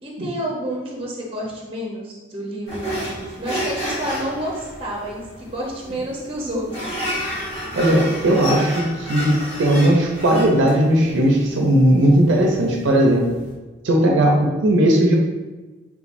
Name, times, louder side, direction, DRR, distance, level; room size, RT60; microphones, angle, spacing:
voice 1, 0.0-7.3, equal, 30° right, -3 dB, 0.7 m, -30 dB
sound 1, 2.7-13.5, equal, 35° left, 0.8 m, -31 dB
voice 2, 7.7-13.3 13.8-15.1, right 1 dB, 75° right, 0 dB, 0.5 m, -17 dB
3.5 x 3.0 x 2.5 m, 1.2 s
head